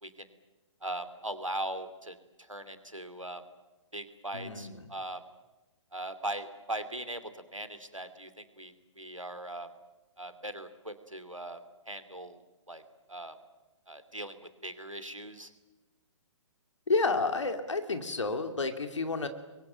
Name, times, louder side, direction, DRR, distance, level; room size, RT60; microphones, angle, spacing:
voice 1, 0.8-2.1 2.5-3.4 3.9-5.2 5.9-9.7 10.2-11.6 11.9-12.4 12.7-12.8 13.1-13.4 13.9-15.5, right 1 dB, 90° right, 11 dB, 2.7 m, -39 dB
voice 2, 4.3-4.9 16.9-19.3, left 3 dB, 65° left, 7 dB, 2.6 m, -30 dB
26.5 x 23.0 x 9.1 m, 1.1 s
figure-of-eight pair, 125°, 16 cm